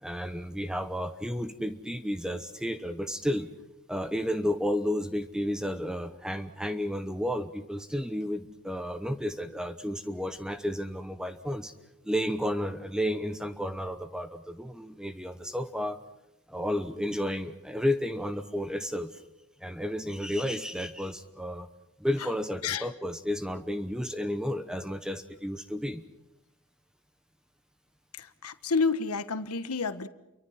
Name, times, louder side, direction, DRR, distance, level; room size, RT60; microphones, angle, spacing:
voice 1, 0.0-3.5 3.9-11.7 12.0-16.0 16.5-19.2 19.6-21.7 22.0-26.0, equal, 5° right, 9 dB, 0.9 m, -32 dB
voice 2, 28.2-30.1, left 4 dB, 85° left, 11 dB, 1.3 m, -29 dB
29.0 x 23.5 x 5.8 m, 0.95 s
head